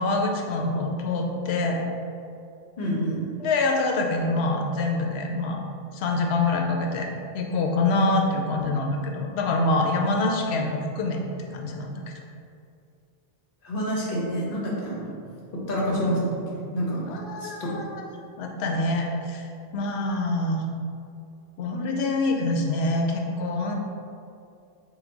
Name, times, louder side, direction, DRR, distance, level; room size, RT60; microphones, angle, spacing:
voice 1, 0.0-1.8 3.4-5.6 5.9-7.1 7.3-11.2 11.5-12.0 17.1-17.9 18.4-19.5 19.7-20.6 21.6-23.8, left 2 dB, 90° left, 1 dB, 0.8 m, -25 dB
voice 2, 2.8-3.2 13.6-15.3 15.5-17.0 17.4-17.7, equal, 60° left, -4 dB, 1.0 m, -28 dB
3.8 x 2.2 x 4.4 m, 2.5 s
omnidirectional pair, 1.0 m